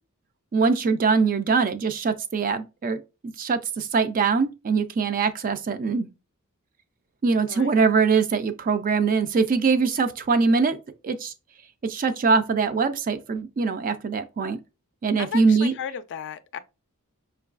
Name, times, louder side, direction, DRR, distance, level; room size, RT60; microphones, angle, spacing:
voice 1, 0.5-3.0 3.4-6.1 7.2-10.8 11.0-11.3 11.8-14.6 15.0-15.7, right 4 dB, 40° right, 0.3 m, -22 dB
voice 2, 15.2-16.6, left 8 dB, 55° left, 0.3 m, -35 dB
5.3 x 2.3 x 2.4 m
head